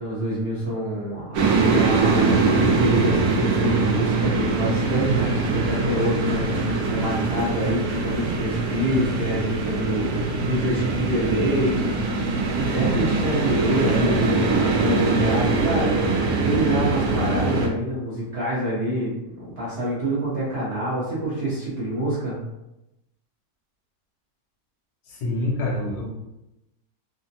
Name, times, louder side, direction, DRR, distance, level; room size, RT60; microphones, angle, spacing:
voice 1, 0.0-12.0 12.6-16.2 16.4-22.4, right 1 dB, 50° right, -8 dB, 0.7 m, -26 dB
sound 1, 1.3-17.7, right 3 dB, 70° right, 1.0 m, -22 dB
voice 2, 25.1-26.1, left 2 dB, 80° left, -2 dB, 1.3 m, -26 dB
3.3 x 2.1 x 2.6 m, 0.92 s
omnidirectional pair, 1.7 m